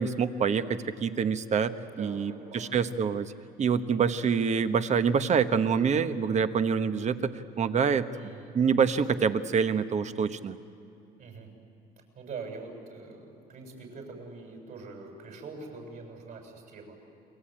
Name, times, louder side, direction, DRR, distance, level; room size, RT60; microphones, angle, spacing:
voice 1, 0.0-1.7 2.0-3.3 3.6-7.3 7.6-8.1 8.5-10.6, right 6 dB, 45° right, 11 dB, 1.3 m, -26 dB
voice 2, 1.9-2.8 8.1-8.5 11.2-11.5 12.1-17.0, right 4 dB, 60° right, 2 dB, 7.3 m, -43 dB
29.0 x 22.5 x 9.0 m, 2.7 s
cardioid pair, 110°, 17 cm